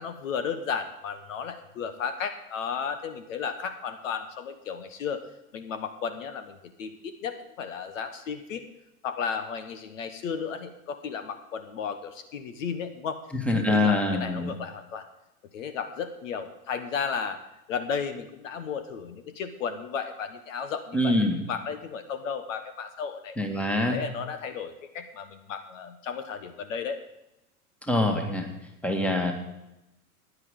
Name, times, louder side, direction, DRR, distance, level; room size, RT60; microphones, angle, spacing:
voice 1, 0.0-5.2 5.5-8.6 9.0-13.2 13.5-15.1 15.5-17.4 17.7-21.2 21.5-23.4 23.7-27.0, left 6 dB, 55° left, 10 dB, 1.2 m, -34 dB
voice 2, 13.3-14.5 20.9-21.4 23.4-24.0 27.9-28.5 28.8-29.3, left 1 dB, 5° left, 4 dB, 1.8 m, -24 dB
16.0 x 10.5 x 3.8 m, 0.92 s
figure-of-eight pair, 90°, 45 cm